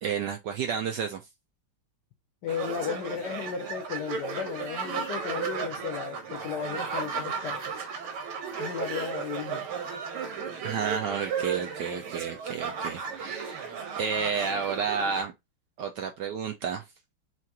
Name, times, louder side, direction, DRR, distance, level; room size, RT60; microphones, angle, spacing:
voice 1, 0.0-1.2 10.6-13.7 14.0-15.3 15.8-16.8, right 6 dB, 70° right, 1.0 m, -31 dB
voice 2, 2.4-7.7 8.6-9.7, left 8 dB, 70° left, 1.0 m, -35 dB
sound 1, 2.5-15.2, right 6 dB, 90° right, 1.9 m, -35 dB
5.9 x 2.5 x 2.8 m
omnidirectional pair, 2.3 m